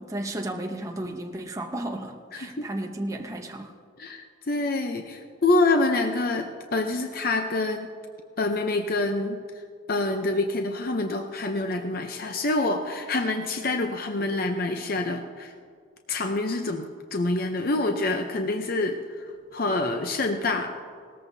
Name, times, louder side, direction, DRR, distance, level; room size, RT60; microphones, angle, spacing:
voice 1, 0.0-3.7, right 1 dB, 15° right, 1 dB, 0.8 m, -33 dB
voice 2, 4.0-7.9 8.4-9.4 9.9-15.5 16.1-19.0 19.5-20.7, left 2 dB, 45° left, 5 dB, 0.6 m, -26 dB
18.5 x 14.0 x 2.7 m, 2.1 s
head